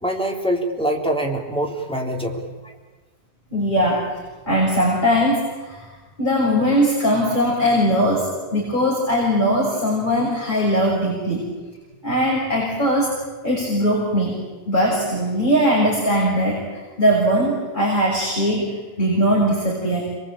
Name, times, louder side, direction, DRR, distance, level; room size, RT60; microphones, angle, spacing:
voice 1, 0.0-2.7, right 1 dB, 5° left, 1 dB, 3.8 m, -24 dB
voice 2, 3.5-4.1 4.4-5.8 6.2-11.5 12.0-13.1 13.4-14.4 14.7-20.1, equal, 50° left, -4 dB, 6.5 m, -20 dB
27.0 x 23.0 x 9.0 m, 1.3 s
omnidirectional pair, 1.1 m